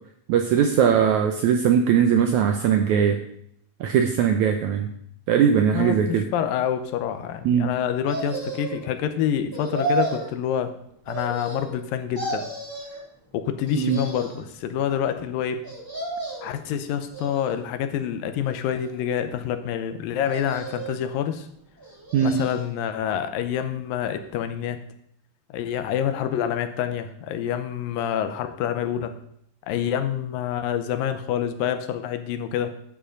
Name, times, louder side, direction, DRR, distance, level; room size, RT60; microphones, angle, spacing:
voice 1, 0.3-3.2 3.8-4.9 5.3-6.2 7.5-7.7 13.8-14.0 22.1-22.4, right 8 dB, 80° right, 5 dB, 1.7 m, -20 dB
voice 2, 5.7-10.7 11.1-12.5 13.3-15.6 16.4-21.5 22.2-24.8 25.5-29.1 29.7-32.8, left 9 dB, 80° left, 9 dB, 2.4 m, -27 dB
sound 1, 8.1-8.9 9.5-10.3 11.1-11.8 12.1-13.0 13.6-14.5 15.6-16.6 17.1-17.8 18.4-19.2 20.2-21.0 21.8-22.7 23.1-23.2, right 2 dB, 25° right, 0.4 m, -32 dB
11.5 x 7.5 x 5.2 m, 0.68 s
omnidirectional pair, 4.2 m